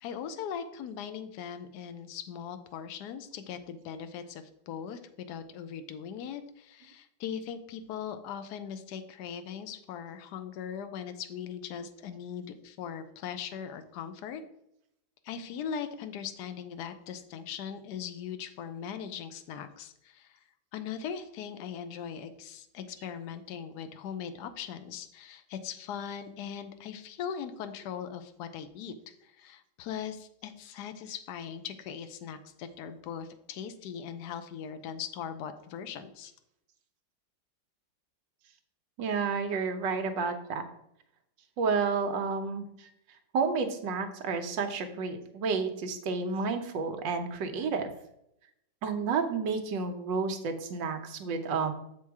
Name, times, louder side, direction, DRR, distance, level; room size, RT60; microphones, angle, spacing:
voice 1, 0.0-14.4 15.2-20.4 20.7-36.3, left 8 dB, 65° left, 9 dB, 1.1 m, -40 dB
voice 2, 39.0-40.6 41.6-42.9 43.3-47.9 48.8-51.7, right 5 dB, 70° right, 6 dB, 1.5 m, -30 dB
7.0 x 4.6 x 4.7 m, 0.78 s
omnidirectional pair, 2.1 m